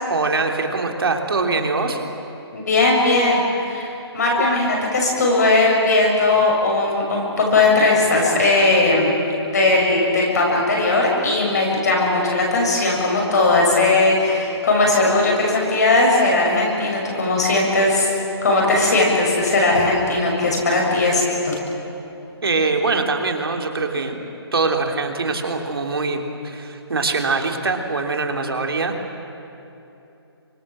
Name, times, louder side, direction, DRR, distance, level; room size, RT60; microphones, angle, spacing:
voice 1, 0.1-2.0 22.4-24.2 24.5-28.9, right 3 dB, 60° right, 3 dB, 3.3 m, -23 dB
voice 2, 2.5-9.2 9.5-18.1 18.4-21.5, left 2 dB, 40° left, -1 dB, 7.2 m, -18 dB
29.0 x 25.0 x 7.6 m, 2.9 s
hypercardioid pair, 175°, 14 cm